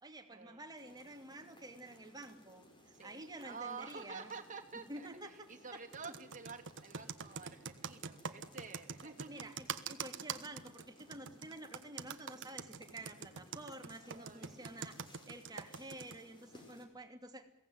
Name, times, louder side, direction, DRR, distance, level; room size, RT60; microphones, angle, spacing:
voice 1, 0.0-4.3 4.9-5.3 6.0-6.1 9.0-15.0 15.3-17.5, right 1 dB, 20° right, 4 dB, 2.7 m, -50 dB
sound 1, 0.8-16.9, left 1 dB, 20° left, 4.9 m, -62 dB
voice 2, 2.9-9.5 14.1-14.8, right 5 dB, 35° right, 2 dB, 2.9 m, -50 dB
Computer keyboard, 5.9-16.2, right 6 dB, 60° right, 1.3 m, -44 dB
22.0 x 17.5 x 9.5 m, 0.75 s
head